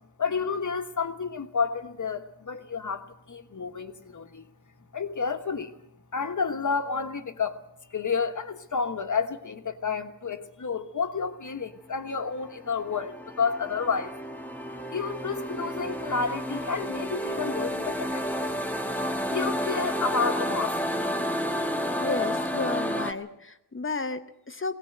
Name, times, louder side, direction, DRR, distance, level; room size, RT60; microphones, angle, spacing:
voice 1, 0.2-4.4 4.9-5.7 6.1-7.6 7.9-14.1 14.9-18.6 19.3-20.8, left 5 dB, 45° left, 1.3 m, -30 dB
sound 1, 12.4-23.1, equal, 5° left, 1.2 m, -31 dB
voice 2, 22.0-24.7, left 3 dB, 30° left, 0.9 m, -32 dB
20.5 x 17.5 x 7.9 m
wide cardioid pair, 160°, 40 cm